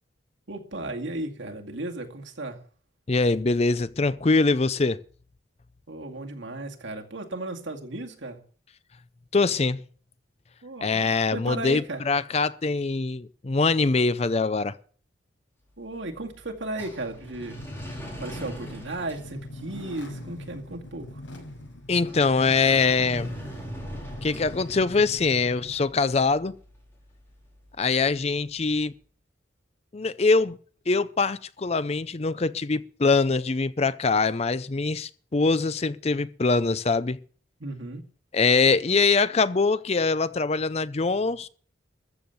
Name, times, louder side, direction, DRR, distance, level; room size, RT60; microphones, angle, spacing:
voice 1, 0.5-2.6 5.9-8.4 10.6-12.0 15.8-17.6 18.2-21.1 37.6-38.0, right 2 dB, 75° right, 2.2 m, -35 dB
voice 2, 3.1-5.0 9.3-9.8 10.8-14.8 21.9-23.3 24.2-26.6 27.8-28.9 29.9-30.6 30.9-37.2 38.3-41.5, left 4 dB, 35° left, 0.5 m, -23 dB
sound 1, 15.6-28.7, equal, 10° left, 4.3 m, -44 dB
sound 2, 17.3-25.9, left 1 dB, 85° left, 6.7 m, -41 dB
14.0 x 7.1 x 7.9 m
head